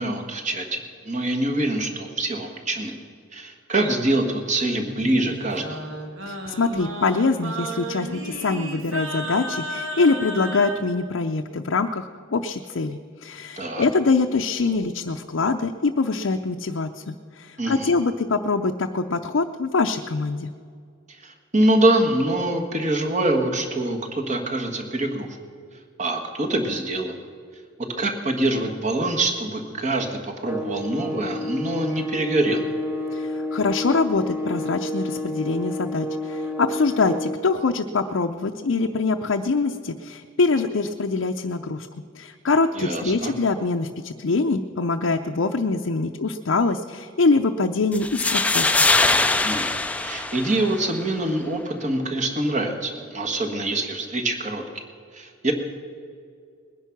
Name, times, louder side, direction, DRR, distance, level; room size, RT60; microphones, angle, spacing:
voice 1, 0.0-2.9 3.3-5.8 13.6-13.9 17.6-17.9 21.1-25.3 26.0-27.1 28.0-32.6 42.7-43.3 49.4-54.6 55.1-55.5, right 1 dB, 35° right, 4 dB, 1.6 m, -25 dB
Singing, 4.8-10.8, right 1 dB, 75° right, 2.0 m, -33 dB
voice 2, 6.3-20.5 33.1-41.9 42.2-48.8, left 3 dB, 65° left, 3 dB, 0.6 m, -24 dB
sound 1, 30.4-37.5, left 1 dB, 10° right, 0.9 m, -30 dB
sound 2, 47.9-50.9, left 2 dB, 5° left, 0.4 m, -22 dB
20.5 x 10.5 x 6.0 m, 2.2 s
head